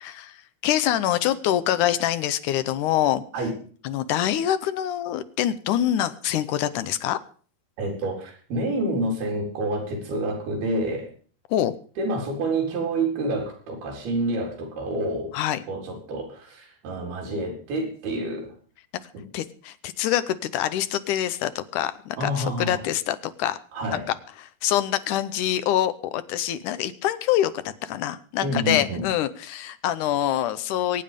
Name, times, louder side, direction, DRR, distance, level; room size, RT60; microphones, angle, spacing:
voice 1, 0.0-3.2 3.8-7.2 11.5-11.7 15.3-15.6 19.3-23.6 24.4-31.0, left 12 dB, 75° left, 13 dB, 1.9 m, -25 dB
voice 2, 7.8-11.1 12.0-15.3 15.7-18.6 22.2-22.8 23.7-24.0 28.4-29.0, right 1 dB, 75° right, 1 dB, 5.9 m, -28 dB
23.0 x 8.9 x 5.2 m, 0.43 s
omnidirectional pair, 4.5 m